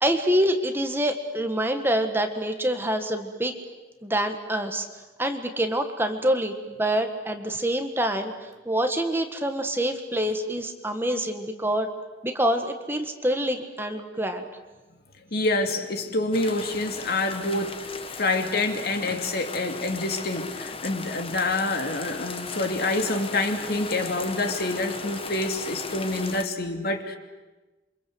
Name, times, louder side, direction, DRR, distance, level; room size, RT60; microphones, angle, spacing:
voice 1, 0.0-3.5 4.0-4.9 5.2-11.9 12.2-14.4, right 1 dB, 10° right, 6 dB, 1.7 m, -26 dB
voice 2, 15.3-17.8 18.2-27.2, left 2 dB, 55° left, 5 dB, 2.7 m, -27 dB
sound 1, 16.3-26.4, left 4 dB, 30° left, 1.6 m, -37 dB
28.0 x 25.0 x 8.1 m, 1.2 s
head